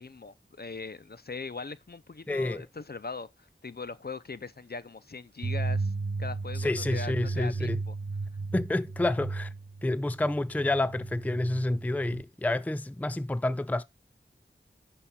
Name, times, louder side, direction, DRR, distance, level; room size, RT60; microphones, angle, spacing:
voice 1, 0.0-5.9 6.2-7.9, left 4 dB, 50° left, 0.6 m, -40 dB
voice 2, 2.3-2.6 6.6-7.8 8.5-9.5 9.8-13.8, left 2 dB, 10° left, 0.4 m, -29 dB
sound 1, 5.4-12.2, right 3 dB, 55° right, 0.8 m, -34 dB
15.5 x 5.8 x 2.3 m
wide cardioid pair, 45°, 21 cm